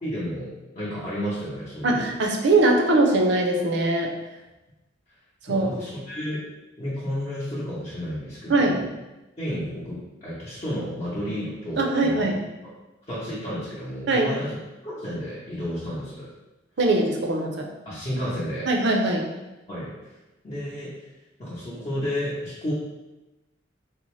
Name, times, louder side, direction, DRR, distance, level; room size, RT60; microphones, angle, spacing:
voice 1, 0.0-2.1 5.5-6.4 6.8-8.8 9.4-12.2 12.6-12.7 13.1-14.6 14.8-16.3 17.8-18.7 19.7-20.1 20.4-21.1 21.4-22.7, equal, 30° left, -10 dB, 0.7 m, -32 dB
voice 2, 1.8-4.1 5.5-5.7 8.5-8.8 11.8-12.4 14.1-14.3 16.8-17.7 18.7-19.3, right 2 dB, 60° right, 2 dB, 0.5 m, -21 dB
3.9 x 2.0 x 3.0 m, 1.0 s
head